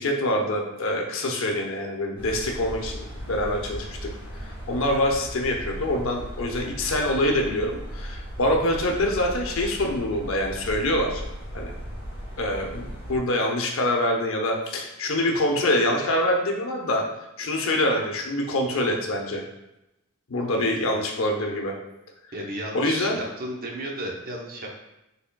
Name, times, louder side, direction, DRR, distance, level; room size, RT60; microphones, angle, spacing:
voice 1, 0.0-4.1 4.4-11.2 11.5-11.7 12.4-17.0 17.4-19.4 20.3-21.8 22.7-23.2, left 1 dB, 65° left, 1 dB, 0.7 m, -25 dB
sound 1, 2.2-13.2, equal, 10° right, 1.4 m, -37 dB
voice 2, 20.5-21.0 22.3-24.8, right 1 dB, 45° right, 0 dB, 0.8 m, -34 dB
5.9 x 3.6 x 2.2 m, 0.89 s
head